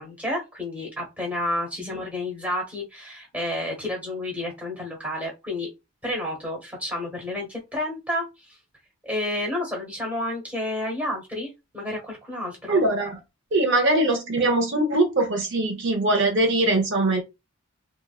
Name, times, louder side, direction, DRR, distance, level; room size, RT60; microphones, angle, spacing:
voice 1, 0.0-5.7 6.0-8.6 9.0-12.8, left 1 dB, 5° right, 1.0 m, -30 dB
voice 2, 12.7-13.2 13.5-17.2, right 2 dB, 55° right, 0.6 m, -22 dB
3.1 x 2.3 x 2.3 m
head